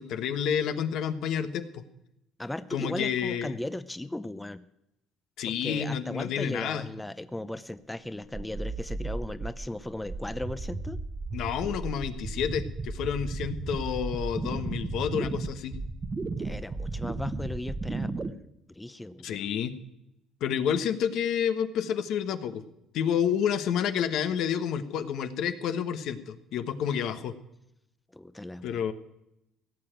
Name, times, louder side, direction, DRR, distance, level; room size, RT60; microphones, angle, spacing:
voice 1, 0.0-1.8 2.7-3.6 5.4-6.8 11.3-15.8 19.2-19.7 20.4-22.6 22.9-27.3 28.6-28.9, left 8 dB, 70° left, 10 dB, 1.2 m, -29 dB
voice 2, 2.4-4.6 5.4-11.0 16.4-18.4 18.7-19.4 28.1-28.8, left 1 dB, 10° left, 13 dB, 0.7 m, -37 dB
sound 1, 8.3-18.3, right 3 dB, 30° right, 1.1 m, -34 dB
17.0 x 6.8 x 9.1 m, 0.85 s
cardioid pair, 95°, 0 cm